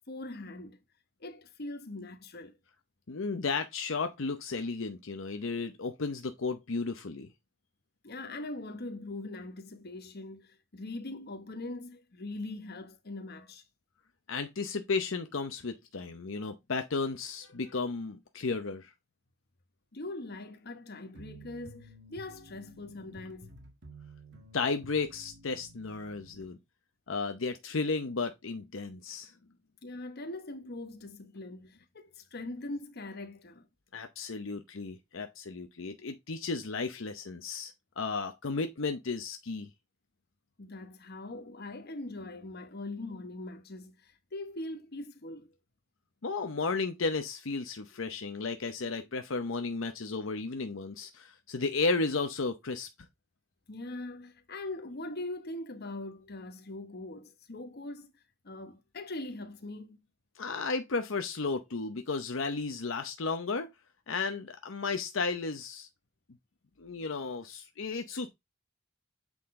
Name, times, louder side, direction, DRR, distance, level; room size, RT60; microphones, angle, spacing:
voice 1, 0.1-0.8 1.2-2.6 8.0-13.6 19.9-23.5 29.8-33.7 40.6-45.5 53.7-58.1 58.4-60.0, left 2 dB, 50° left, 1.1 m, -41 dB
voice 2, 3.1-7.3 14.3-18.9 24.5-26.6 27.1-29.3 33.9-39.7 46.2-52.9 60.4-63.7 64.1-65.9 66.8-68.3, left 4 dB, 70° left, 0.8 m, -34 dB
sound 1, 21.2-26.5, right 1 dB, 60° right, 1.6 m, -52 dB
8.3 x 3.9 x 3.7 m
head